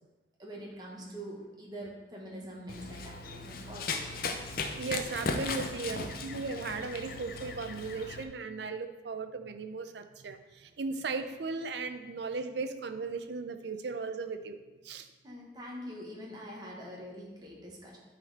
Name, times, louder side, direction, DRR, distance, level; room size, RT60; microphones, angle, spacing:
voice 1, 0.4-4.5 5.9-6.1 15.2-18.0, equal, 25° right, -3 dB, 1.4 m, -44 dB
Run, 2.7-8.2, left 3 dB, 55° left, 0.6 m, -37 dB
voice 2, 4.8-14.6 14.8-15.1, right 4 dB, 70° right, 8 dB, 0.5 m, -37 dB
9.4 x 4.2 x 4.2 m, 1.2 s
head